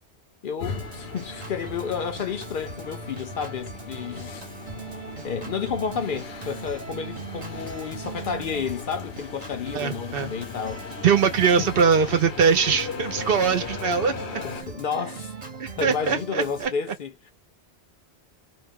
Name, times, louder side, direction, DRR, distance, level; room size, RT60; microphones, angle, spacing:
voice 1, 0.4-4.3 5.2-10.9 11.6-11.7 14.4-15.3 15.8-17.3, left 6 dB, 60° left, 0.6 m, -31 dB
sound 1, 0.6-14.6, left 6 dB, 80° left, 0.9 m, -38 dB
Organ, 0.7-16.7, right 4 dB, 40° right, 1.0 m, -40 dB
voice 2, 9.7-10.3 11.0-14.1 15.6-16.7, right 6 dB, 65° right, 0.9 m, -22 dB
2.5 x 2.2 x 3.4 m
omnidirectional pair, 1.1 m